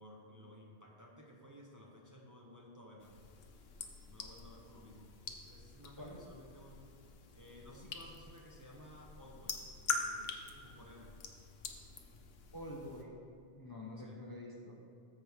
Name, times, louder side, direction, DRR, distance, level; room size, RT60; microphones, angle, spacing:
voice 1, 0.0-3.2 4.1-5.1 5.4-6.9 7.3-11.2 14.0-14.2, equal, 20° right, -2 dB, 0.7 m, -56 dB
sound 1, 3.0-13.0, left 5 dB, 65° left, 1.0 m, -45 dB
voice 2, 12.5-13.2 13.6-14.9, left 1 dB, 25° left, -2 dB, 0.7 m, -47 dB
13.5 x 4.6 x 3.6 m, 2.5 s
omnidirectional pair, 1.1 m